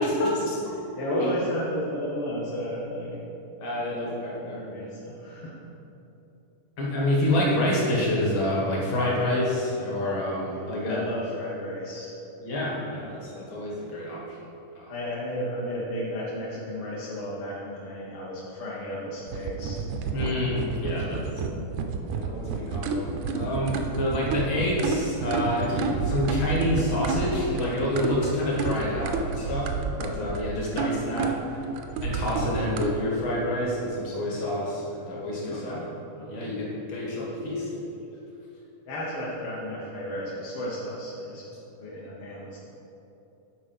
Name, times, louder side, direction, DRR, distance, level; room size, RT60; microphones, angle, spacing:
voice 1, 0.0-0.6 1.1-1.3 3.6-4.6 6.8-11.0 12.4-14.5 14.8-14.9 20.1-21.2 22.1-31.4 32.0-35.8 36.3-38.0, left 1 dB, 50° left, -4 dB, 1.8 m, -28 dB
voice 2, 0.7-3.2 3.7-5.6 10.5-12.1 14.9-19.8 20.1-20.4 20.8-21.7 29.4-29.6 35.5-35.9 36.1-36.5 38.9-41.4 41.8-42.6, equal, 65° left, -6 dB, 1.4 m, -34 dB
sound 1, 19.3-32.9, right 5 dB, 85° right, 1.5 m, -30 dB
10.5 x 4.0 x 5.3 m, 2.9 s
omnidirectional pair, 3.6 m